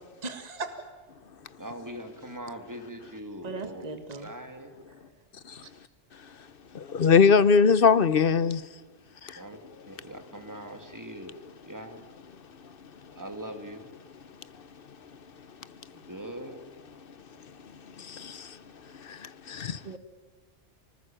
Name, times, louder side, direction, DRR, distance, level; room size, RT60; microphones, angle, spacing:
voice 1, 0.2-0.7 3.4-4.3 19.8-20.0, right 3 dB, 35° right, 1.8 m, -37 dB
voice 2, 1.6-3.9 4.2-4.7 9.4-9.6 9.9-12.0 13.2-13.9 15.9-16.6, right 1 dB, 15° right, 2.6 m, -41 dB
voice 3, 6.7-8.6 9.2-9.4 18.0-18.6 19.1-19.8, left 5 dB, 55° left, 1.0 m, -22 dB
25.0 x 19.0 x 9.0 m
omnidirectional pair, 1.2 m